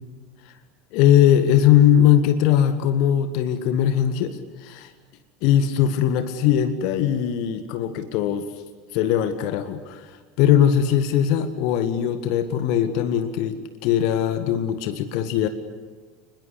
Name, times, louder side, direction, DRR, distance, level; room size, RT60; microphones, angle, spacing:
voice 1, 0.9-4.9 5.4-8.5 8.9-15.5, left 10 dB, 50° left, 10 dB, 1.7 m, -20 dB
29.5 x 21.5 x 8.3 m, 1.4 s
figure-of-eight pair, 75°, 0 cm